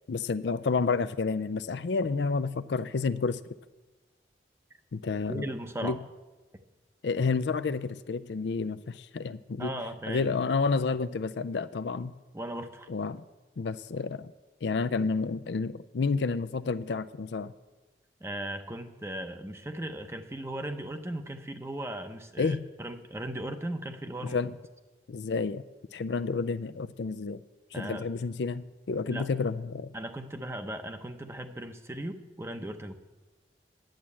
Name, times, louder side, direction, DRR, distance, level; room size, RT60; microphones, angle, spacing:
voice 1, 0.1-3.4 4.9-5.5 5.8-6.0 7.0-9.7 10.1-12.1 12.9-13.2 13.6-14.3 14.6-17.5 22.4-22.7 24.2-24.6 25.1-25.6 25.9-27.4 27.8-29.9, left 4 dB, 85° left, 14 dB, 0.4 m, -30 dB
voice 2, 5.3-6.0 9.6-10.3 12.3-12.9 18.2-24.4 27.7-28.0 29.1-29.3 29.9-33.0, right 1 dB, 15° right, 7 dB, 0.7 m, -37 dB
10.5 x 7.6 x 8.4 m, 1.2 s
head